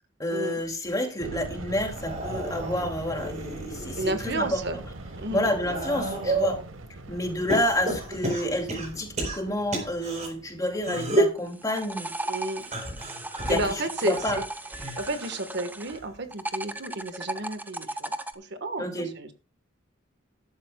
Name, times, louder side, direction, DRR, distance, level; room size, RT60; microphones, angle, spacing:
voice 1, 0.2-4.6 5.3-6.6 7.1-12.1 13.5-13.6 14.0-14.4 18.8-19.1, left 1 dB, 20° left, 3 dB, 2.5 m, -29 dB
sound 1, 1.2-11.4, right 2 dB, 80° right, 1.1 m, -41 dB
sound 2, 1.8-4.2 4.7-6.6 7.5-10.3 10.8-11.4 12.6-15.5 15.8-16.3 17.4-17.5, right 1 dB, 35° right, 4.0 m, -31 dB
voice 2, 4.0-4.8 5.1-5.5 12.2-12.7 13.5-14.4 15.0-19.3, right 2 dB, 60° right, 8 dB, 1.4 m, -32 dB
sound 3, 11.4-16.0 16.3-18.3, right 2 dB, 10° right, 0.8 m, -35 dB
14.0 x 12.0 x 2.3 m, 0.34 s
head